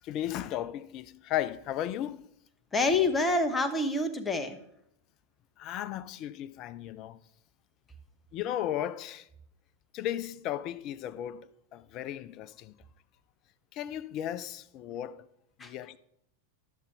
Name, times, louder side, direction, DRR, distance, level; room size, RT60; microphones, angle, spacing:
voice 1, 0.0-2.3 5.6-7.2 8.3-9.3 9.9-12.7 13.7-15.3 15.6-16.0, left 12 dB, 40° left, 0.4 m, -35 dB
voice 2, 2.7-4.6 15.6-15.7, left 2 dB, 15° left, 0.9 m, -27 dB
12.0 x 6.8 x 3.4 m
figure-of-eight pair, 90°, 0 cm